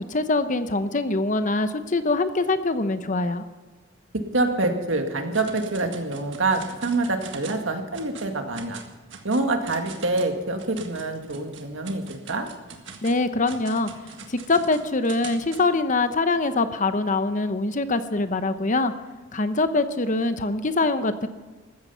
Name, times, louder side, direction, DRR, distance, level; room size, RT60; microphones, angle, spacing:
voice 1, 0.0-3.5 13.0-13.9 14.3-18.9 19.3-21.3, left 3 dB, 40° left, 11 dB, 0.9 m, -24 dB
voice 2, 4.3-8.8 9.2-12.5, right 2 dB, 85° right, 4 dB, 2.0 m, -26 dB
sound 1, 5.3-7.7 7.9-8.3 8.5-15.6, right 5 dB, 65° right, 1.8 m, -43 dB
15.0 x 13.5 x 5.7 m, 1.3 s
head